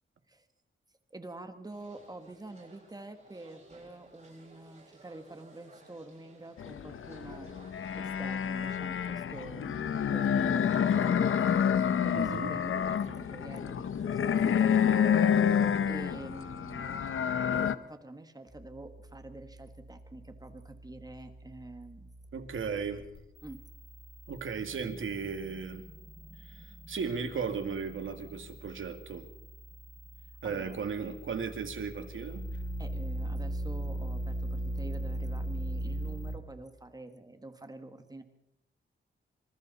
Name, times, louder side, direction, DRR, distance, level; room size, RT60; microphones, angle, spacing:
voice 1, 1.1-7.5 8.0-17.1 17.5-22.1 23.4-23.6 30.2-30.8 32.8-38.2, right 2 dB, 20° right, 8 dB, 1.5 m, -47 dB
sound 1, 1.7-8.3, right 3 dB, 35° right, 7.6 m, -57 dB
sound 2, 6.6-17.8, left 8 dB, 80° left, 0.9 m, -28 dB
voice 2, 12.1-12.5 22.3-23.1 24.3-25.8 26.4-29.3 30.4-32.5, right 5 dB, 75° right, 7 dB, 2.2 m, -36 dB
sound 3, 18.5-36.3, right 1 dB, 25° left, 6.8 m, -40 dB
26.0 x 26.0 x 4.2 m, 0.82 s
wide cardioid pair, 160°, 21 cm